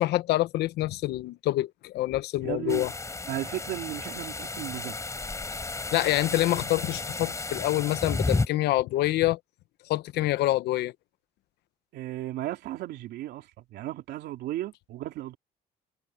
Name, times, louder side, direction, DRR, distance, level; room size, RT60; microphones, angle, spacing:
voice 1, 0.0-2.9 5.9-9.4 9.9-10.9, left 16 dB, 80° left, 0.9 m, -26 dB
voice 2, 2.4-2.9 3.2-5.0 11.9-15.4, right 14 dB, 80° right, 3.3 m, -35 dB
sound 1, 2.7-8.5, left 3 dB, 20° left, 4.4 m, -32 dB
cardioid pair, 110°, 17 cm